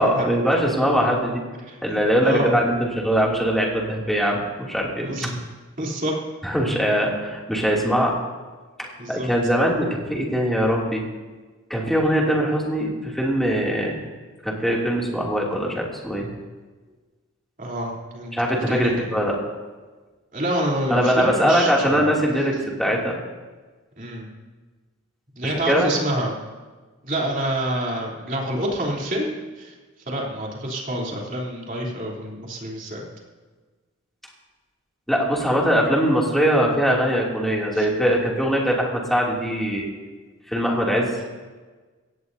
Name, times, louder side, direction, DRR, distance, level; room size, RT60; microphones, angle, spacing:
voice 1, 0.0-1.4 1.8-5.1 6.4-8.1 8.8-11.0 11.7-14.0 14.4-16.3 18.3-19.4 20.9-23.1 25.4-25.9 35.1-39.9 40.5-41.1, equal, ahead, -3 dB, 2.8 m, -22 dB
voice 2, 1.6-2.5 5.0-5.3 5.8-6.2 9.0-9.3 17.6-18.3 18.7-19.1 20.3-22.1 24.0-24.3 25.4-26.3 27.0-29.7 30.1-33.0 37.7-37.9 41.2-41.3, right 1 dB, 40° right, -2 dB, 3.4 m, -27 dB
22.5 x 18.0 x 2.8 m, 1.3 s
head